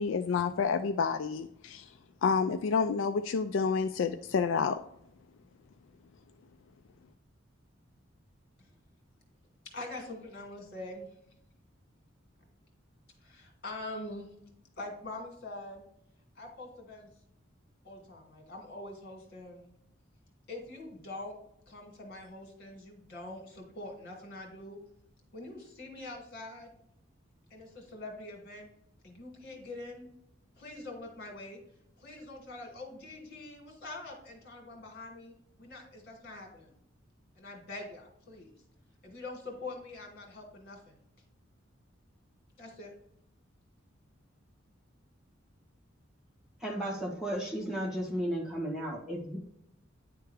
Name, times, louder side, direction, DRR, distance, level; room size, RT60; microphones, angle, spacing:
voice 1, 0.0-1.8 2.2-4.8, left 5 dB, 70° left, 8 dB, 0.3 m, -29 dB
voice 2, 9.6-11.1 13.2-14.3 14.8-15.9 16.4-17.1 17.8-19.7 20.5-21.4 21.7-24.8 25.3-26.7 27.5-28.7 29.0-30.1 30.6-31.6 32.0-36.8 37.4-38.5 39.0-41.0 42.6-42.9, left 2 dB, 50° left, 1 dB, 2.2 m, -44 dB
voice 3, 46.6-49.4, equal, 5° right, -3 dB, 1.6 m, -34 dB
10.0 x 3.4 x 3.3 m, 0.75 s
head